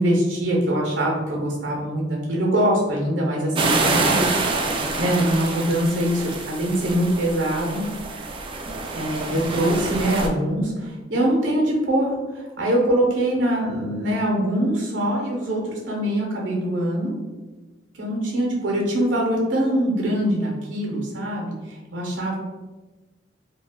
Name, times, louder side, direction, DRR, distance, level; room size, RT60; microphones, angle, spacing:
voice 1, 0.0-4.2 4.6-7.8 8.9-17.1 17.9-22.4, right 1 dB, 80° right, -2 dB, 0.7 m, -23 dB
sound 1, 3.6-10.3, right 3 dB, 30° right, 0.3 m, -26 dB
2.4 x 2.2 x 3.4 m, 1.2 s
head